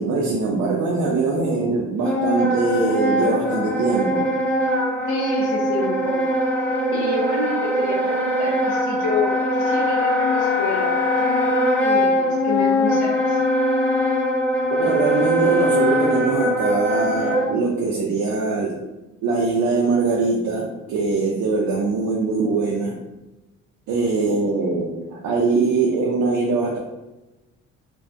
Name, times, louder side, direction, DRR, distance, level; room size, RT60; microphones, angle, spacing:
voice 1, 0.0-4.3 14.8-18.9 19.2-23.0 23.9-26.8, right 3 dB, 70° right, -3 dB, 0.5 m, -22 dB
Wind instrument woodwind instrument, 2.0-17.5, left 1 dB, 5° left, 0.4 m, -21 dB
voice 2, 5.1-13.4, left 2 dB, 75° left, -2 dB, 0.7 m, -28 dB
2.6 x 2.2 x 2.5 m, 1.0 s
cardioid pair, 90°, 30 cm